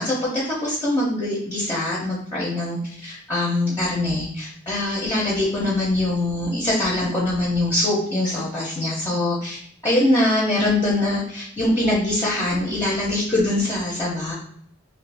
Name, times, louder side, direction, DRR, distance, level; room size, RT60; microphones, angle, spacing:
voice 1, 0.0-14.3, left 1 dB, 15° left, -6 dB, 0.7 m, -23 dB
2.7 x 2.6 x 3.3 m, 0.63 s
head